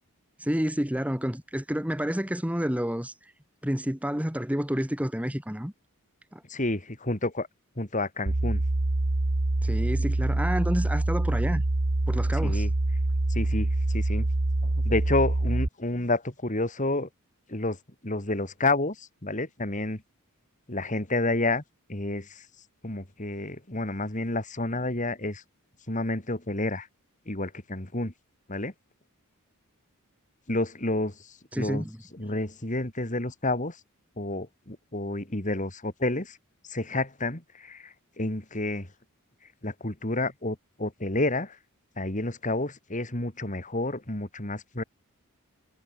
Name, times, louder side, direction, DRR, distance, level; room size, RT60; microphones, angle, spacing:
voice 1, 0.4-3.3 3.6-5.7 6.3-6.4 9.6-11.6 12.1-12.7 31.5-32.0, equal, 5° right, 1.7 m, -29 dB
voice 2, 6.5-7.5 7.8-8.6 12.4-12.7 13.3-14.3 14.6-17.1 17.5-17.8 18.0-20.0 20.7-21.6 21.9-22.4 22.8-25.4 25.9-26.9 27.3-28.1 28.5-28.7 30.5-31.8 32.1-33.8 34.2-36.4 36.7-38.9 39.6-41.6 42.0-44.8, left 2 dB, 35° left, 3.0 m, -30 dB
sound 1, 8.3-15.7, right 2 dB, 50° right, 1.1 m, -25 dB
head